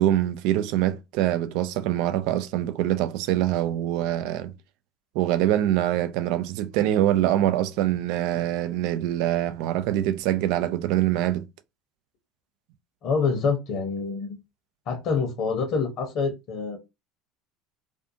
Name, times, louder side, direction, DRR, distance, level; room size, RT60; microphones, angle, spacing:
voice 1, 0.0-4.5 5.1-11.4, right 13 dB, 60° right, 0.3 m, -24 dB
voice 2, 13.0-14.4 14.9-16.8, left 5 dB, 55° left, 0.9 m, -26 dB
2.5 x 2.4 x 2.6 m
hypercardioid pair, 70°, 0 cm